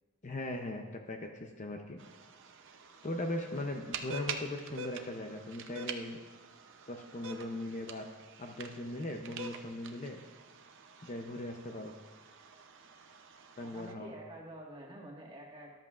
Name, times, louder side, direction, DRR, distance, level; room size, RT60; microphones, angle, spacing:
voice 1, 0.2-2.0 3.0-6.2 6.9-8.0 8.4-10.2 11.0-11.9 13.6-14.1, left 1 dB, 35° left, 4 dB, 0.6 m, -39 dB
sound 1, 2.0-13.9, right 4 dB, 55° right, 0.6 m, -47 dB
voice 2, 13.6-15.7, right 1 dB, 25° right, -2 dB, 1.6 m, -48 dB
13.0 x 11.5 x 2.5 m, 1.3 s
head